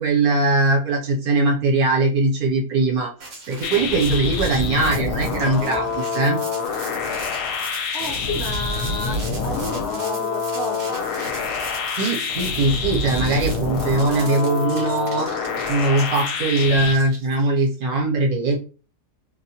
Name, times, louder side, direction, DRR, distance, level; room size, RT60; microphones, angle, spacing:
voice 1, 0.0-3.1 3.5-6.4 12.0-15.3 15.7-18.6, right 2 dB, 70° right, 1.1 m, -21 dB
sound 1, 3.2-17.7, right 3 dB, 55° right, 0.8 m, -39 dB
sound 2, 3.6-16.9, left 4 dB, 80° left, 1.1 m, -26 dB
voice 2, 7.9-11.2, left 1 dB, 50° left, 0.9 m, -32 dB
2.8 x 2.1 x 2.7 m
omnidirectional pair, 1.7 m